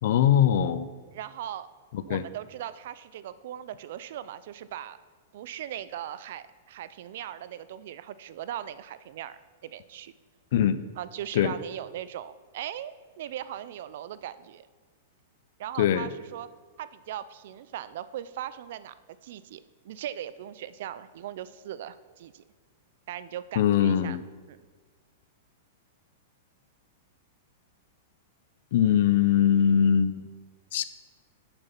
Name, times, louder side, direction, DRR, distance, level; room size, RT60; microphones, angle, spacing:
voice 1, 0.0-0.9 2.1-2.2 10.5-10.8 11.3-11.5 15.8-16.1 23.6-24.2 28.7-30.3 30.7-30.8, left 9 dB, 50° left, 14 dB, 0.5 m, -22 dB
voice 2, 1.1-1.7 2.1-5.0 5.3-10.1 11.0-14.7 15.6-16.5 16.8-18.9 19.2-22.4 23.1-24.2 24.5-24.6, right 11 dB, 50° right, 15 dB, 0.4 m, -39 dB
7.1 x 6.7 x 5.8 m, 1.4 s
supercardioid pair, 175°, 0 cm